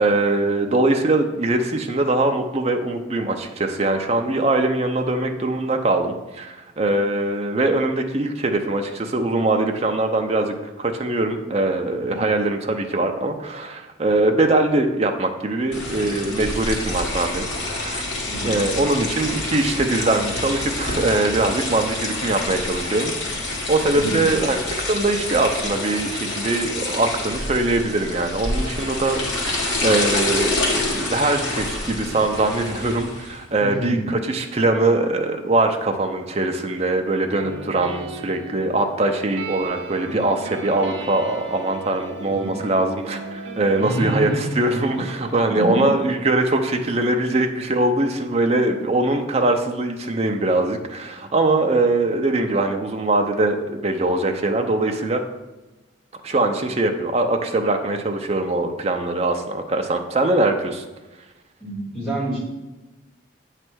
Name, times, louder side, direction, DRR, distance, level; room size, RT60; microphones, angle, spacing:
voice 1, 0.0-18.0 18.4-23.1 23.5-55.2 56.2-60.8, right 2 dB, 30° right, 5 dB, 0.6 m, -22 dB
sound 1, 15.7-33.4, left 2 dB, 70° left, 1.6 m, -27 dB
voice 2, 33.6-33.9 42.3-42.5 43.8-44.5 45.5-45.9 61.6-62.4, right 1 dB, 5° left, -9 dB, 2.7 m, -27 dB
sound 2, 37.4-45.3, right 3 dB, 80° right, 0.8 m, -36 dB
8.2 x 3.3 x 6.2 m, 1.1 s
head